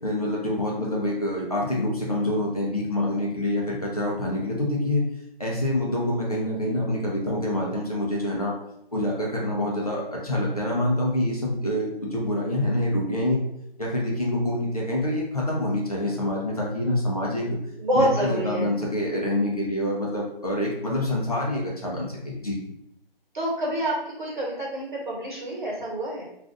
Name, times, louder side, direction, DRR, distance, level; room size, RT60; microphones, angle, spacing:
voice 1, 0.0-5.0 5.4-8.5 8.9-13.4 13.8-17.5 17.9-22.6, left 1 dB, 40° left, -4 dB, 0.6 m, -26 dB
voice 2, 17.8-18.7 23.3-26.2, right 1 dB, 55° right, -4 dB, 1.2 m, -27 dB
2.5 x 2.4 x 3.5 m, 0.79 s
hypercardioid pair, 175°, 30 cm